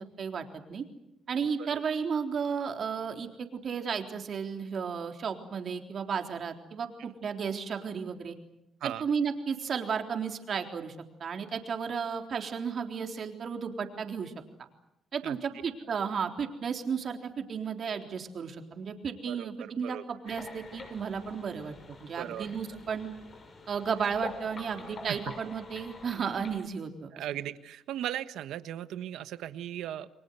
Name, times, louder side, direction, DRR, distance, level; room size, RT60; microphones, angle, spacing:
voice 1, 0.2-0.8 1.3-8.4 8.8-10.9 11.2-14.3 15.1-21.7 22.0-23.1 23.7-27.1, right 6 dB, 55° right, 4 dB, 3.7 m, -33 dB
voice 2, 19.2-20.0 22.2-22.5 25.1-25.2 27.1-30.1, right 11 dB, 85° right, 12 dB, 1.3 m, -37 dB
sound 1, 20.3-26.6, left 3 dB, 45° left, 6.3 m, -46 dB
29.5 x 23.0 x 8.2 m, 0.87 s
cardioid pair, 90°, 0 cm